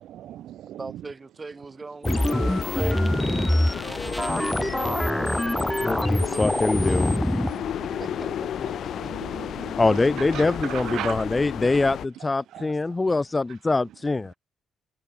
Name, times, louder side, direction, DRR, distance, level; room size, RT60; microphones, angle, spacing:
voice 1, 0.0-0.8 4.9-5.3 7.3-7.8 9.0-9.7 10.2-11.2 12.5-12.6, right 12 dB, 80° right, 1.9 m, -37 dB
voice 2, 0.8-4.6 6.1-6.5 6.8-6.9 8.0-9.1, right 3 dB, 25° right, 7.9 m, -41 dB
sound 1, 2.0-12.1, left 10 dB, 65° left, 2.0 m, -32 dB
sound 2, 2.0-7.6, equal, 5° left, 2.0 m, -24 dB
voice 3, 5.8-7.1 9.8-14.3, left 3 dB, 20° left, 1.0 m, -24 dB
cardioid pair, 90°, 0 cm